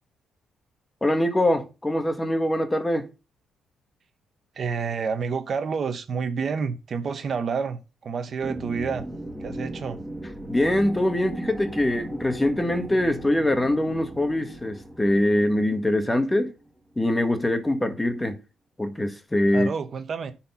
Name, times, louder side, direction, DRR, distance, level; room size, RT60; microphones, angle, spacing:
voice 1, 1.0-3.1 10.5-16.5 17.0-18.4 18.8-19.7, left 1 dB, 15° left, 1.6 m, -23 dB
voice 2, 4.5-9.1 9.4-10.0 19.5-20.3, right 5 dB, 50° right, 1.1 m, -29 dB
sound 1, 8.4-16.9, right 1 dB, 5° right, 1.9 m, -38 dB
10.0 x 4.4 x 5.6 m
cardioid pair, 90°, 0 cm